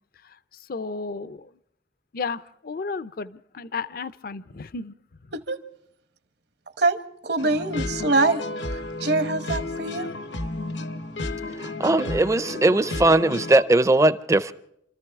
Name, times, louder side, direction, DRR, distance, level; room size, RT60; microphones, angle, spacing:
voice 1, 0.7-1.5 2.1-4.9, left 4 dB, 50° left, 0.5 m, -33 dB
voice 2, 7.2-8.4 8.7-10.2, right 3 dB, 65° right, 1.2 m, -24 dB
sound 1, 7.4-13.6, left 2 dB, 75° left, 0.9 m, -32 dB
voice 3, 11.6-14.5, right 2 dB, 15° right, 0.5 m, -19 dB
27.0 x 14.0 x 3.5 m
head